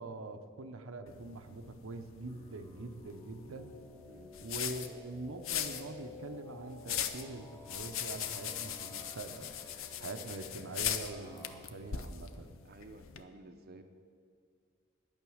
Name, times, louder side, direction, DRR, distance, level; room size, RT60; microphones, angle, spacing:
voice 1, 0.0-3.7 4.4-9.6 10.0-12.6 13.7-13.8, right 2 dB, 90° right, 6 dB, 0.7 m, -44 dB
sound 1, 1.1-13.2, left 9 dB, 75° left, 0.7 m, -41 dB
sound 2, 2.3-11.6, left 3 dB, 10° left, 1.1 m, -53 dB
voice 2, 12.6-13.8, right 2 dB, 50° right, 6 dB, 0.6 m, -53 dB
10.5 x 8.9 x 6.3 m, 2.2 s
head